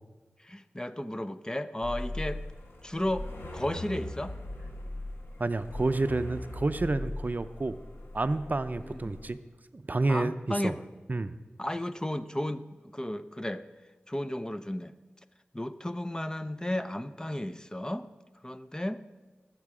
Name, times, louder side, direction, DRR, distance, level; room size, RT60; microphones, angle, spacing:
voice 1, 0.4-2.4 2.8-3.3 3.5-4.3 8.8-9.1 10.1-10.8 11.6-13.7 14.1-14.9 15.5-18.1 18.4-19.0, left 1 dB, 20° left, 11 dB, 0.6 m, -33 dB
sound 1, 1.8-9.3, left 1 dB, 85° left, 1.9 m, -40 dB
voice 2, 5.4-7.8 8.1-9.4 9.7-10.7 11.1-11.3, right 2 dB, 45° right, 11 dB, 0.6 m, -29 dB
19.0 x 7.5 x 4.9 m, 1.3 s
cardioid pair, 40°, 4 cm